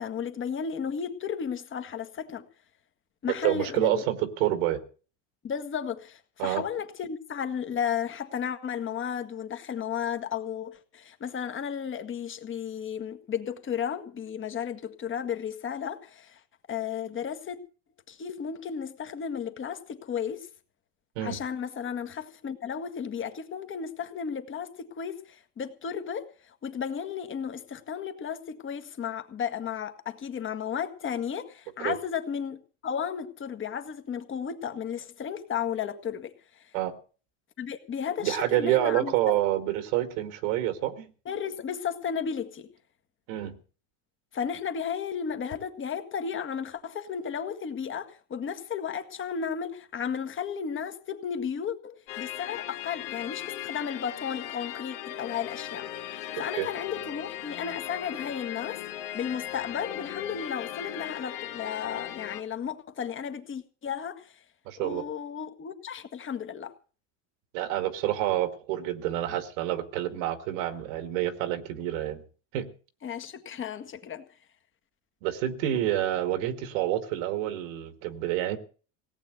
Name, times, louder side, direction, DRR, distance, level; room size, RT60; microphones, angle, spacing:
voice 1, 0.0-2.5 3.2-4.0 5.4-16.4 16.7-17.6 18.1-20.5 21.2-36.7 37.6-39.3 41.2-42.7 44.3-58.8 59.1-64.4 64.8-66.7 73.0-74.3, left 7 dB, 30° left, 1.8 m, -34 dB
voice 2, 3.4-4.8 6.4-6.6 21.2-21.4 31.8-32.0 36.7-36.9 38.2-41.1 43.3-43.6 56.5-56.7 64.7-65.0 67.5-72.2 72.5-72.7 75.2-78.6, right 13 dB, 75° right, 2.2 m, -28 dB
sound 1, 52.1-62.4, left 12 dB, 75° left, 2.3 m, -38 dB
17.5 x 8.6 x 8.0 m
supercardioid pair, 125°, 39 cm